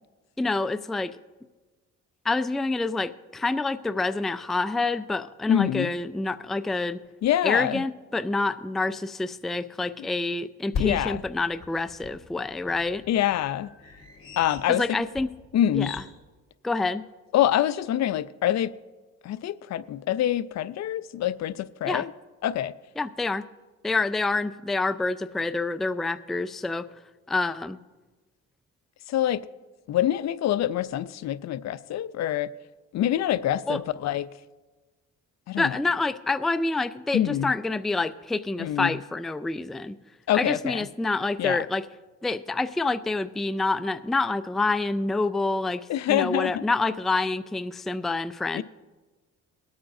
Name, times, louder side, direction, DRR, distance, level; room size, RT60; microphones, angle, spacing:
voice 1, 0.4-1.2 2.2-7.0 7.4-13.0 14.7-15.3 15.7-16.0 16.6-17.1 21.9-22.0 23.0-23.4 23.8-26.9 27.3-27.8 33.7-33.8 35.6-40.0 40.3-41.8 42.2-48.6, left 3 dB, ahead, 0.3 m, -27 dB
voice 2, 5.5-5.9 7.2-7.8 10.0-10.1 10.8-11.2 13.1-13.7 14.4-14.8 15.5-15.9 17.3-18.7 19.2-22.1 22.4-22.7 29.1-29.4 29.9-32.5 32.9-34.3 35.5-35.8 37.1-37.5 38.6-38.9 40.3-40.9 41.4-41.6 45.9-46.6 48.5-48.6, left 11 dB, 65° left, 0.5 m, -25 dB
sound 1, 6.3-6.4 7.0-7.1 7.4-7.5 10.7-16.1, left 5 dB, 45° left, 3.6 m, -38 dB
22.0 x 8.8 x 2.6 m
cardioid pair, 90°, 30 cm